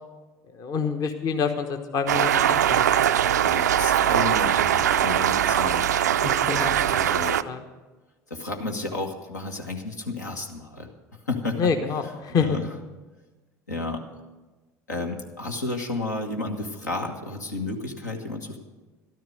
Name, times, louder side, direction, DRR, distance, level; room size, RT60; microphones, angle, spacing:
voice 1, 0.5-2.9 6.2-6.7 7.4-7.6 11.6-12.6, left 6 dB, 40° left, 6 dB, 1.1 m, -27 dB
sound 1, 2.1-7.4, right 10 dB, 75° right, 0.4 m, -21 dB
voice 2, 3.4-5.9 6.9-7.4 8.3-10.9 11.2-11.7 12.0-12.8 13.7-14.0 14.9-18.6, left 2 dB, 80° left, 2 dB, 1.5 m, -32 dB
13.5 x 12.5 x 5.3 m, 1.2 s
figure-of-eight pair, 65°, 9 cm